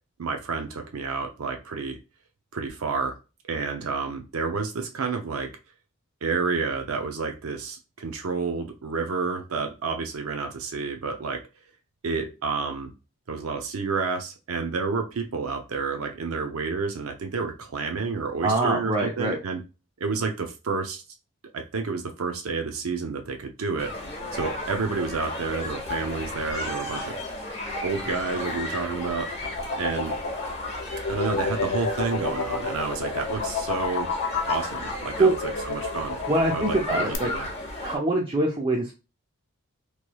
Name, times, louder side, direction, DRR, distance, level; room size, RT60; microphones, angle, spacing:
voice 1, 0.2-2.0 2.5-3.1 3.5-5.5 6.2-11.4 12.0-12.9 13.3-19.6 20.0-21.0 21.5-23.9 24.3-27.1 27.8-29.3 29.8-30.1 31.1-34.1 34.5-36.2 36.5-37.5, right 4 dB, 80° right, 4 dB, 0.5 m, -30 dB
voice 2, 18.4-19.4 35.2-35.3 36.3-37.3 37.8-38.9, right 2 dB, 25° right, -2 dB, 0.4 m, -24 dB
sound 1, 23.8-38.0, left 2 dB, 30° left, 0.8 m, -34 dB
sound 2, 28.7-37.1, left 4 dB, 55° left, 0.5 m, -31 dB
3.1 x 3.0 x 2.2 m, 0.30 s
head